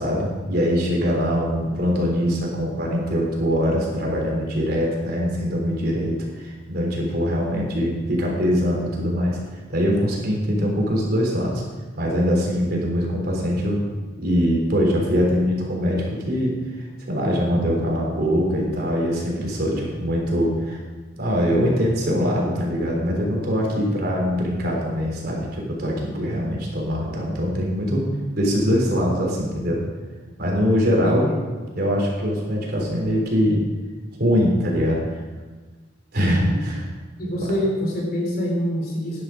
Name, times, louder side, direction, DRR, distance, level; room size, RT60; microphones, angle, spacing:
voice 1, 0.0-9.4 9.7-11.6 12.0-13.8 14.2-16.5 17.1-20.8 21.2-28.0 28.3-29.8 30.4-31.3 31.7-33.6 34.2-35.0 36.1-36.9 37.4-37.5, equal, 55° right, -1 dB, 3.6 m, -22 dB
voice 2, 31.0-31.4 36.2-36.6 37.2-39.2, equal, 55° left, -1 dB, 3.5 m, -25 dB
11.5 x 11.0 x 5.0 m, 1.3 s
head